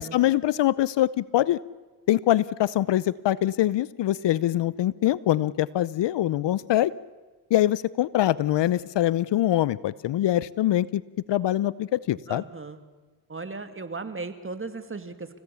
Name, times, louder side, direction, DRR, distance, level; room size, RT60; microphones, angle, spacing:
voice 1, 0.0-1.6 2.1-6.9 7.5-11.0 11.3-12.4, left 13 dB, 60° left, 20 dB, 0.7 m, -23 dB
voice 2, 12.3-12.8 13.3-15.4, right 3 dB, 25° right, 9 dB, 2.4 m, -36 dB
29.5 x 16.5 x 7.0 m, 1.3 s
supercardioid pair, 60°, 48 cm